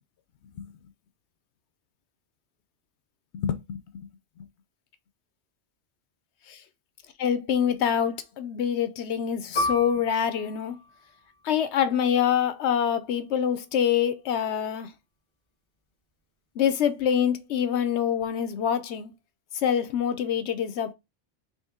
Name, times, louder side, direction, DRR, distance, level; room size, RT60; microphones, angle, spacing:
voice 1, 3.3-3.8 4.4-4.5 6.5-6.6 7.2-10.8 11.4-14.9 16.6-19.1 19.5-20.9, left 8 dB, 90° left, 1.0 m, -25 dB
Piano, 9.6-14.6 14.9-15.1 15.9-16.2, left 2 dB, 25° left, 1.4 m, -35 dB
4.2 x 3.0 x 3.6 m
omnidirectional pair, 1.1 m